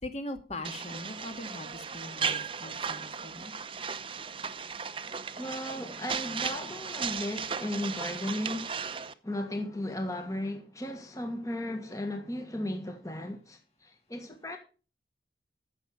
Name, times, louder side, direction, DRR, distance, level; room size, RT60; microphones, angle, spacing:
voice 1, 0.0-3.5, left 1 dB, 35° left, 1.9 m, -41 dB
sound 1, 0.6-9.1, right 6 dB, 30° right, 0.7 m, -36 dB
voice 2, 5.4-8.8 9.2-14.6, left 1 dB, 20° left, 1.5 m, -35 dB
14.5 x 7.1 x 5.1 m
head